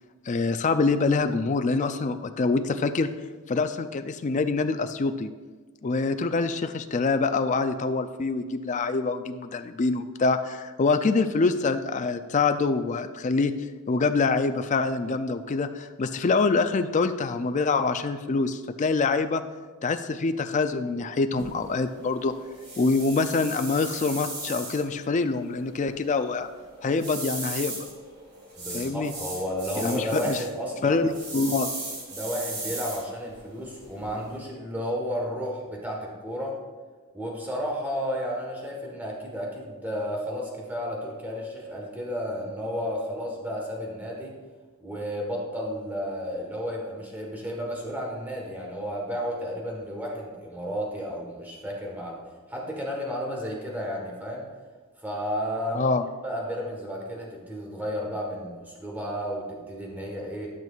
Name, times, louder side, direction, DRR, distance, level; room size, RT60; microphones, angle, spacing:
voice 1, 0.3-3.1 3.5-5.3 5.8-13.5 13.9-19.4 19.8-22.3 22.8-26.5 26.8-27.8 28.7-29.1 29.8-30.4 30.8-31.7 55.7-56.0, left 4 dB, 35° left, 9 dB, 0.4 m, -25 dB
sound 1, 21.4-34.4, right 2 dB, 50° right, 2.2 m, -38 dB
voice 2, 28.6-31.0 32.1-36.6 37.1-44.3 44.8-52.2 52.5-54.5 55.0-55.9 56.2-60.5, equal, 10° right, -2 dB, 1.3 m, -32 dB
12.0 x 6.0 x 2.4 m, 1.4 s
head